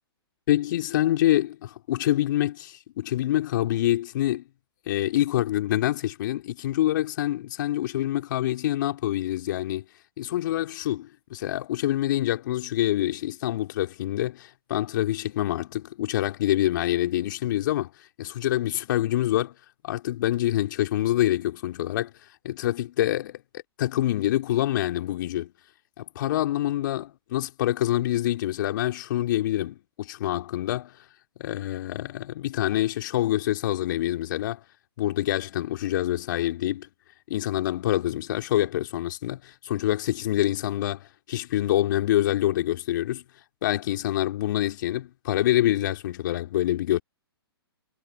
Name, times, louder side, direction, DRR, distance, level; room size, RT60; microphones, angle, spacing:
voice 1, 0.5-4.4 4.9-9.8 10.2-17.9 18.2-19.5 19.8-22.1 22.4-23.4 23.8-25.5 26.0-30.9 31.4-34.6 35.0-36.9 37.3-43.2 43.6-47.0, left 13 dB, 50° left, 3.6 m, -26 dB
figure-of-eight pair, 120°, 13 cm